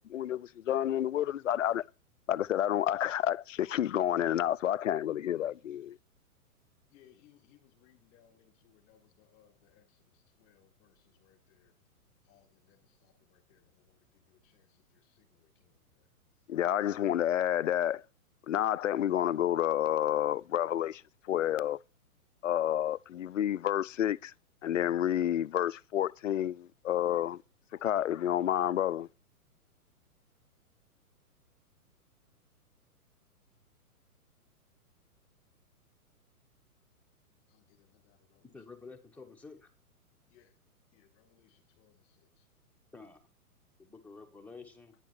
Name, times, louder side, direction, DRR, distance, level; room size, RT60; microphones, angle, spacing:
voice 1, 0.0-1.9 2.3-6.0 16.5-18.1 18.5-21.8 22.4-24.3 24.6-27.4 27.7-29.1, left 11 dB, 60° left, 0.5 m, -30 dB
voice 2, 6.9-11.7 12.2-16.1 16.3-16.5 37.5-39.2 40.3-40.6 40.9-42.5, left 11 dB, 30° left, 2.3 m, -67 dB
voice 3, 38.5-39.7 42.9-43.3 43.8-44.9, left 4 dB, 5° left, 1.3 m, -50 dB
10.5 x 9.7 x 4.5 m
figure-of-eight pair, 115°, 45 cm